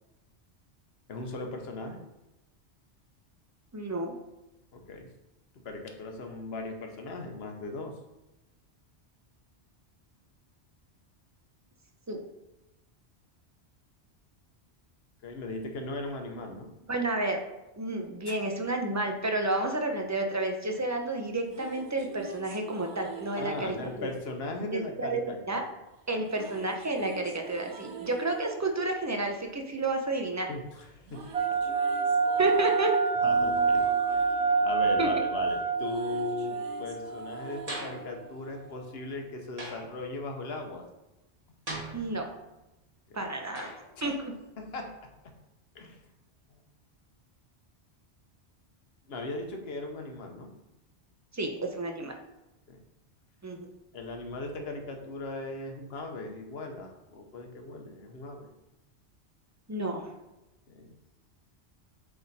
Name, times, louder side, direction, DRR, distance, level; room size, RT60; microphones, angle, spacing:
voice 1, 1.1-2.0 4.7-5.1 5.6-8.0 15.2-16.7 18.3-18.4 23.4-25.6 26.1-26.5 30.5-31.3 31.6-31.7 33.2-40.9 43.1-43.3 44.0-44.2 44.6-45.1 45.7-46.0 46.5-46.6 49.1-50.5 52.7-52.8 53.9-58.5 60.7-61.0, left 2 dB, 65° left, 3 dB, 1.2 m, -38 dB
voice 2, 3.7-4.1 12.1-12.2 16.9-17.4 17.8-24.1 24.7-25.6 26.1-30.5 32.4-32.9 35.0-35.1 41.9-42.3 43.1-43.7 44.0-44.3 51.3-52.2 53.4-53.7 59.7-60.1, right 2 dB, 20° right, 3 dB, 0.6 m, -30 dB
sound 1, 21.3-25.4 26.2-30.5 30.7-39.3, right 4 dB, 90° right, 1.1 m, -46 dB
sound 2, 31.3-38.0, right 5 dB, 55° right, 0.4 m, -27 dB
sound 3, 37.7-38.1 39.6-40.0 41.7-42.4 43.5-43.9, right 2 dB, 35° right, 2.0 m, -40 dB
7.8 x 3.6 x 4.1 m, 0.97 s
omnidirectional pair, 1.1 m